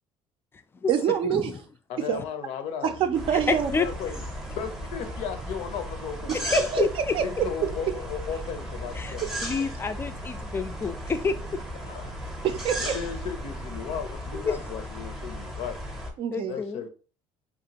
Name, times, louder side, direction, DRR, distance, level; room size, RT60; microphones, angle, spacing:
voice 1, 0.9-1.5 2.1-2.2 2.8-3.7 6.5-6.8 7.1-7.2 12.4-12.9 16.2-16.5, right 9 dB, 50° right, 0.4 m, -25 dB
voice 2, 1.9-3.0 3.8-4.2 4.5-6.8 7.2-9.5 11.8-12.1 12.8-15.8 16.5-16.9, left 7 dB, 70° left, 0.5 m, -35 dB
sound 1, 2.8-14.1, right 6 dB, 90° right, 0.8 m, -46 dB
sound 2, 3.1-16.1, equal, 5° right, 0.7 m, -36 dB
voice 3, 3.3-3.9 6.4-7.1 8.9-11.6 14.3-14.6 16.3-16.8, left 5 dB, 20° left, 0.3 m, -29 dB
2.9 x 2.4 x 2.8 m
cardioid pair, 105°, 11 cm